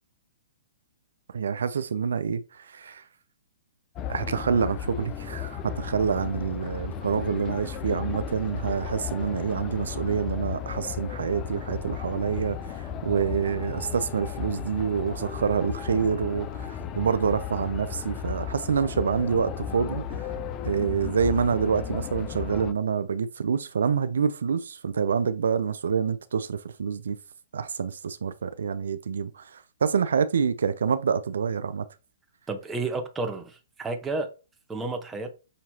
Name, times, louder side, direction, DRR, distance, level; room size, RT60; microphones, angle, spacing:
voice 1, 1.3-3.0 4.1-20.0 20.6-27.2 27.5-31.8, right 6 dB, 75° right, 0.4 m, -27 dB
sound 1, 4.0-22.7, left 8 dB, 30° left, 0.4 m, -35 dB
voice 2, 32.5-34.3 34.7-35.3, right 3 dB, 10° right, 0.9 m, -31 dB
6.3 x 2.8 x 2.8 m
hypercardioid pair, 130°, 0 cm